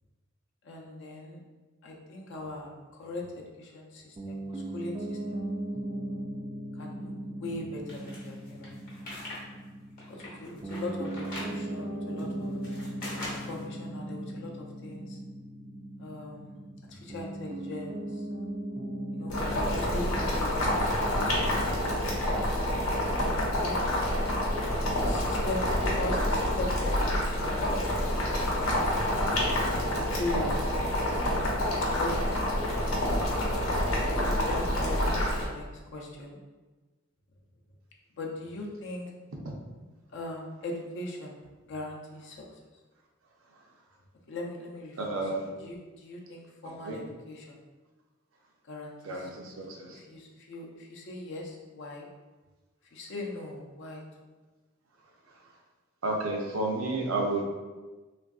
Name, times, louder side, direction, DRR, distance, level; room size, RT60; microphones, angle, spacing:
voice 1, 0.6-1.4 1.8-5.2 6.7-8.8 10.1-12.6 13.3-15.2 16.0-18.2 19.1-22.1 23.3-23.8 25.0-28.0 29.7-30.6 31.8-32.6 34.2-36.4 38.2-39.1 40.1-41.3 41.6-42.6 44.3-47.6 48.7-49.3 49.9-52.1 52.8-54.0, left 2 dB, 60° left, -1 dB, 0.5 m, -40 dB
Piano, 4.2-23.6, right 1 dB, 25° right, 0.3 m, -39 dB
sound 1, 7.9-9.4 9.8-11.6 12.2-13.6, left 1 dB, 45° left, 0.8 m, -41 dB
Boiling, 19.3-35.4, left 1 dB, 85° left, 0.8 m, -28 dB
voice 2, 45.0-45.4 46.9-47.0 49.1-49.3 49.8-49.9 56.0-57.4, right 2 dB, 75° right, 0 dB, 0.6 m, -30 dB
3.4 x 2.4 x 2.3 m, 1.3 s
head